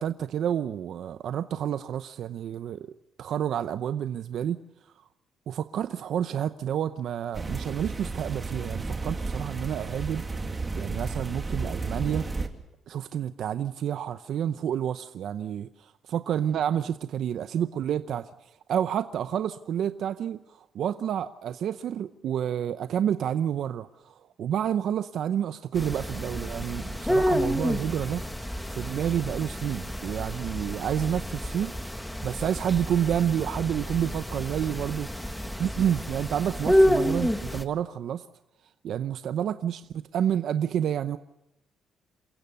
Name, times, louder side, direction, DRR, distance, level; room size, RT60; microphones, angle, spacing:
voice 1, 0.0-2.9 3.2-4.6 5.5-10.2 10.7-12.3 12.9-18.3 18.7-28.2 28.7-31.7 32.2-38.2 38.8-41.2, right 9 dB, 70° right, 12 dB, 0.7 m, -29 dB
sound 1, 7.3-12.5, right 3 dB, 25° right, 2.2 m, -33 dB
sound 2, 25.7-37.6, equal, 5° left, 1.5 m, -29 dB
28.0 x 16.0 x 6.9 m, 0.93 s
cardioid pair, 90°, 0 cm